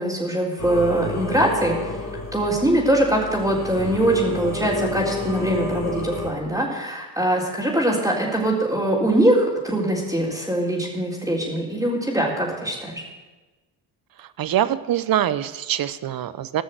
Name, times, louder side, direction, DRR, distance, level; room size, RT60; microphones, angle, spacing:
voice 1, 0.0-2.1 2.3-13.0, right 1 dB, 5° right, -7 dB, 3.7 m, -22 dB
Singing / Musical instrument, 0.6-6.3, left 2 dB, 40° left, 2.9 m, -30 dB
voice 2, 14.2-16.6, right 11 dB, 55° right, 15 dB, 0.8 m, -24 dB
16.0 x 6.3 x 7.7 m, 1.2 s
supercardioid pair, 60°, 41 cm